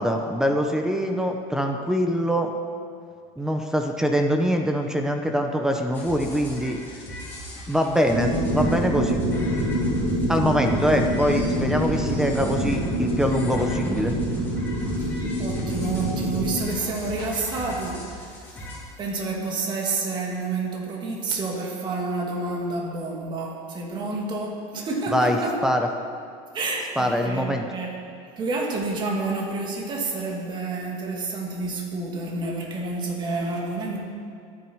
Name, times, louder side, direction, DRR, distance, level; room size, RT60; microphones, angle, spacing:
voice 1, 0.0-2.5 3.4-6.8 7.7-9.2 10.3-14.1 25.1-25.9 27.0-27.7, equal, 5° right, 4 dB, 0.9 m, -23 dB
sound 1, 5.9-18.8, equal, 15° left, 4.2 m, -38 dB
sound 2, 8.1-16.6, right 1 dB, 65° right, 3.9 m, -26 dB
voice 2, 15.0-18.0 19.0-25.6 26.5-27.9 28.2-34.0, right 3 dB, 30° right, -1 dB, 2.6 m, -29 dB
23.0 x 9.7 x 4.8 m, 2.5 s
supercardioid pair, 150°, 16 cm